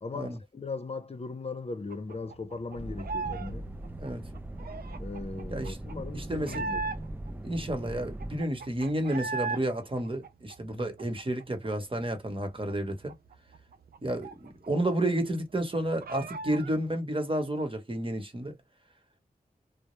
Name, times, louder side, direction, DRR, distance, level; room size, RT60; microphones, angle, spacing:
voice 1, 0.0-3.7 5.0-6.8 10.8-10.9, left 3 dB, 40° left, 0.6 m, -38 dB
sound 1, 1.9-3.5 3.8-7.3 7.7-7.8 8.0-9.6 10.0-11.7 12.0-12.1 12.4-14.9 15.1-15.2 15.6-16.7, right 4 dB, 75° right, 0.4 m, -38 dB
sound 2, 2.7-8.4, right 1 dB, 10° right, 0.4 m, -40 dB
sound 3, 3.2-7.3, right 1 dB, 15° left, 0.9 m, -50 dB
voice 2, 6.1-6.7 7.4-13.1 14.0-18.6, right 1 dB, 35° right, 1.0 m, -31 dB
2.1 x 2.0 x 3.0 m
cardioid pair, 40°, 16 cm